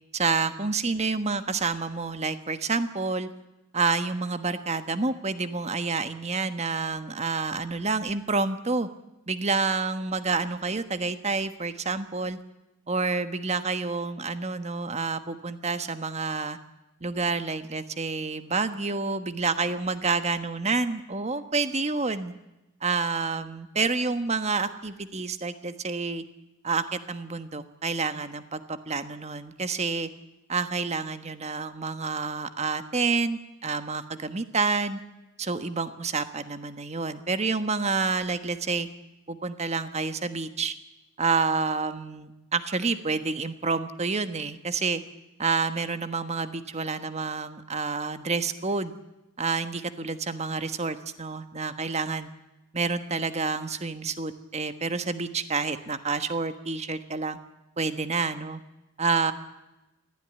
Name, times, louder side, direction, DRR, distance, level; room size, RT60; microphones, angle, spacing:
voice 1, 0.1-3.3 3.7-8.9 9.3-12.4 12.9-16.6 17.0-22.3 22.8-26.2 26.6-30.1 30.5-35.0 35.4-38.9 39.3-40.7 41.2-45.0 45.4-48.9 49.4-52.3 52.7-57.4 57.8-58.6 59.0-59.3, right 4 dB, 30° right, 11 dB, 1.3 m, -28 dB
22.5 x 15.5 x 10.0 m, 0.97 s
head